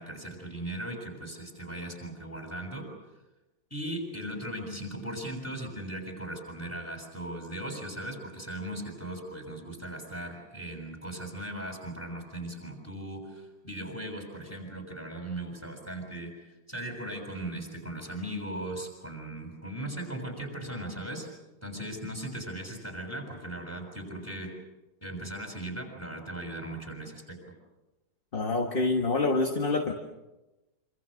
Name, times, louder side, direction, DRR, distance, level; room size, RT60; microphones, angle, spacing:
voice 1, 0.0-2.9 3.7-21.3 21.6-24.5 25.0-27.4, right 1 dB, 10° left, 2 dB, 6.5 m, -38 dB
voice 2, 28.3-29.9, left 3 dB, 30° left, 3 dB, 1.7 m, -26 dB
27.0 x 26.5 x 6.4 m, 1.1 s
omnidirectional pair, 1.9 m